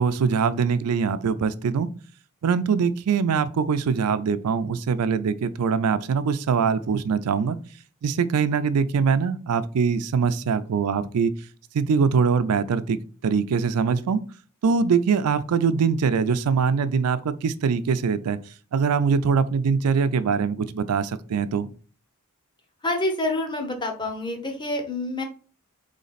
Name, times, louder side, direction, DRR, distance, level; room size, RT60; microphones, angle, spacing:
voice 1, 0.0-1.9 2.4-7.6 8.0-11.3 11.7-13.0 13.2-14.2 14.6-18.4 18.7-21.7, right 6 dB, 90° right, 0.4 m, -23 dB
voice 2, 22.8-25.2, left 1 dB, 20° left, 0.8 m, -27 dB
4.1 x 3.2 x 4.0 m
head